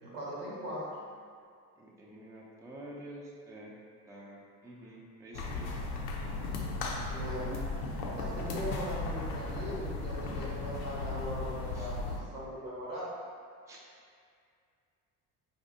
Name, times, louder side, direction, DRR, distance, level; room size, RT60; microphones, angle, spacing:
voice 1, 0.0-0.9 7.1-13.1, equal, 85° right, -6 dB, 0.9 m, -40 dB
voice 2, 1.8-3.7 4.1-5.7 8.6-8.8 11.7-11.9 13.7-13.8, right 1 dB, 5° right, -4 dB, 0.5 m, -48 dB
sound 1, 5.3-12.2, left 3 dB, 75° left, 0.6 m, -36 dB
4.1 x 2.6 x 2.6 m, 2.2 s
figure-of-eight pair, 55°, 45 cm